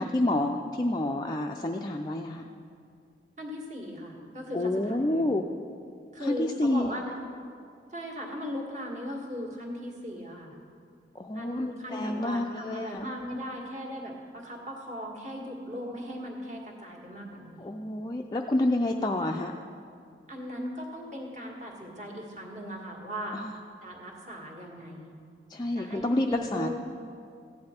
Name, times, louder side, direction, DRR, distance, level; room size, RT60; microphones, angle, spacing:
voice 1, 0.0-2.5 4.5-5.4 6.2-6.9 11.1-13.0 17.6-19.5 23.3-23.5 25.5-26.7, left 1 dB, 20° left, 2 dB, 0.4 m, -28 dB
voice 2, 3.4-5.3 6.1-7.1 7.9-10.5 11.3-17.7 20.3-23.4 23.8-25.1 25.7-26.7, equal, 40° right, 0 dB, 1.6 m, -38 dB
14.5 x 9.6 x 4.4 m, 2.4 s
head